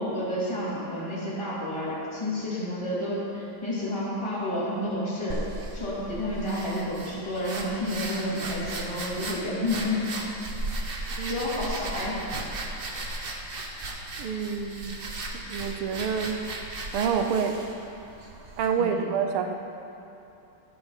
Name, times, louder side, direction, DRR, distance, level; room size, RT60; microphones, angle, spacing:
voice 1, 0.0-10.3 10.9-12.2 18.8-19.1, left 1 dB, 15° left, -9 dB, 2.6 m, -30 dB
sound 1, 5.3-18.7, right 2 dB, 50° right, 0.6 m, -36 dB
voice 2, 14.2-15.1 15.5-16.4 16.9-17.6 18.6-19.5, right 6 dB, 90° right, 6 dB, 1.6 m, -27 dB
13.5 x 5.9 x 5.7 m, 2.9 s
omnidirectional pair, 2.3 m